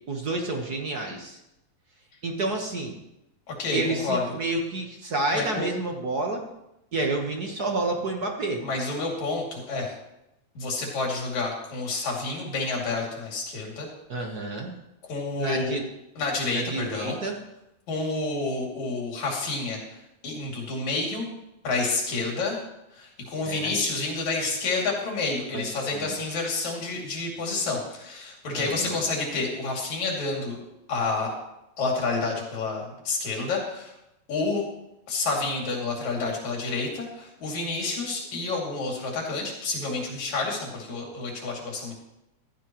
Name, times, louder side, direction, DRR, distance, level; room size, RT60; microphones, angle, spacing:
voice 1, 0.1-1.4 2.2-3.0 3.7-6.4 6.9-8.6 14.1-14.7 15.4-15.8 16.5-17.4 23.4-23.7 25.5-25.6 25.9-26.2 28.5-29.0, right 2 dB, 45° right, 2 dB, 1.3 m, -29 dB
voice 2, 3.6-4.3 5.3-5.7 8.6-9.9 10.6-13.9 15.1-15.8 16.2-17.2 17.9-20.0 20.2-21.3 21.6-22.6 22.9-30.6 30.9-31.3 31.8-33.9 34.3-34.6 35.1-41.9, left 3 dB, 75° left, -1 dB, 4.1 m, -29 dB
15.0 x 14.0 x 3.1 m, 0.88 s
omnidirectional pair, 3.3 m